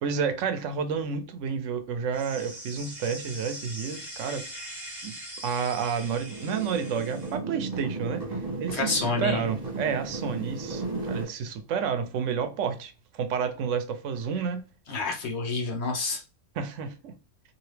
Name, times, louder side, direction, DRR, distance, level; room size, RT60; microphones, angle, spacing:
voice 1, 0.0-4.4 5.0-5.2 5.4-14.7 16.5-17.1, right 6 dB, 80° right, 0.9 m, -30 dB
sound 1, 2.1-7.4, right 1 dB, ahead, 1.1 m, -42 dB
sound 2, 6.2-11.2, right 3 dB, 35° right, 1.2 m, -34 dB
voice 2, 8.7-9.4 14.9-16.2, left 3 dB, 65° left, 1.1 m, -28 dB
2.9 x 2.7 x 3.2 m
omnidirectional pair, 1.3 m